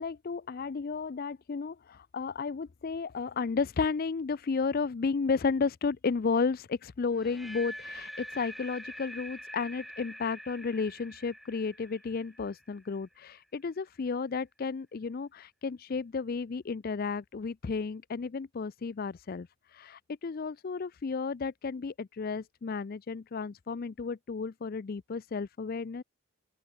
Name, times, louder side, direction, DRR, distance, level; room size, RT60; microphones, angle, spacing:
voice 1, 0.0-19.5 19.7-26.0, left 4 dB, 40° left, 0.4 m, -33 dB
sound 1, 7.1-13.2, equal, ahead, 1.6 m, -45 dB
open air
head